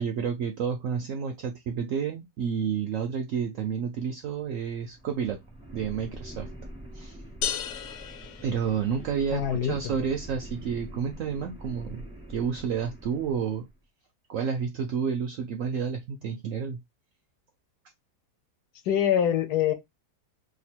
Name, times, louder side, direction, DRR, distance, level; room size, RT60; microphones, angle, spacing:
voice 1, 0.0-5.4 5.7-6.5 6.9-7.2 8.4-12.0 12.3-13.7 14.3-16.8, right 7 dB, 75° right, 0.7 m, -30 dB
sound 1, 4.2-13.8, right 1 dB, 5° right, 0.6 m, -44 dB
sound 2, 7.4-9.3, left 9 dB, 90° left, 1.2 m, -34 dB
voice 2, 9.3-9.9 18.9-19.7, left 10 dB, 70° left, 1.1 m, -25 dB
2.9 x 2.4 x 4.2 m
omnidirectional pair, 1.8 m